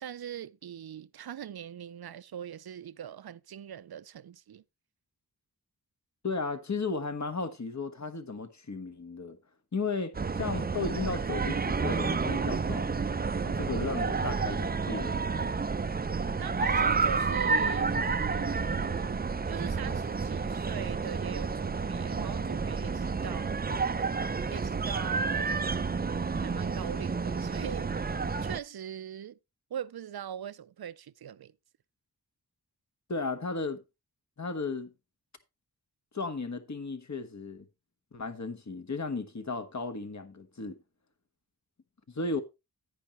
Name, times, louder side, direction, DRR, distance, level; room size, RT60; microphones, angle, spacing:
voice 1, 0.0-4.6 16.4-18.0 18.2-19.2 19.5-23.6 24.5-25.6 26.4-27.9 28.4-29.4 29.7-31.5, right 9 dB, 75° right, 0.5 m, -41 dB
voice 2, 6.2-9.4 9.7-13.1 13.4-15.2 33.1-33.8 34.4-34.9 36.1-37.6 38.1-40.8 42.1-42.4, left 4 dB, 45° left, 1.3 m, -35 dB
sound 1, 10.1-28.6, right 4 dB, 25° right, 0.4 m, -30 dB
10.5 x 9.8 x 3.0 m
wide cardioid pair, 70°, 38 cm